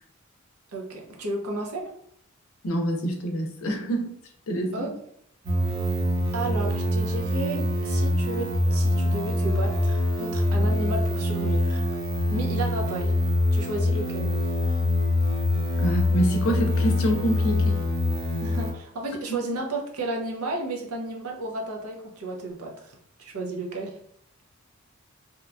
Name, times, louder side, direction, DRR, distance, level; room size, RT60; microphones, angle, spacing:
voice 1, 0.7-1.9 4.7-4.9 6.3-11.8 12.3-13.1 13.5-14.3 18.4-22.9 23.2-23.9, right 2 dB, 90° right, 0 dB, 0.6 m, -32 dB
voice 2, 2.6-4.1 4.5-4.9 15.8-17.8 19.3-19.4, right 1 dB, 75° left, 3 dB, 0.5 m, -26 dB
sound 1, 5.5-18.7, left 1 dB, 45° right, 0.7 m, -24 dB
2.9 x 2.2 x 2.4 m, 0.70 s
head